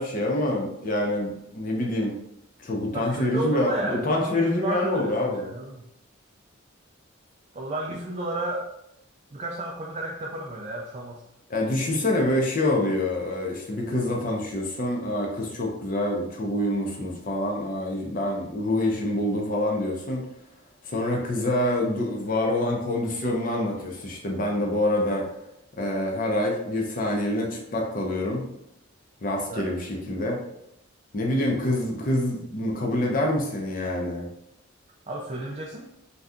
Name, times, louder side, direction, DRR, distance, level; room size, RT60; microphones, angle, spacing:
voice 1, 0.0-2.2 2.6-5.5 11.5-20.3 20.8-25.3 25.8-28.5 29.2-30.4 31.1-34.3, left 1 dB, 40° left, 0 dB, 0.5 m, -26 dB
voice 2, 2.9-5.8 7.5-8.7 9.3-11.2 29.5-29.7 35.1-35.9, right 1 dB, 35° right, -2 dB, 0.3 m, -32 dB
2.7 x 2.3 x 3.5 m, 0.79 s
head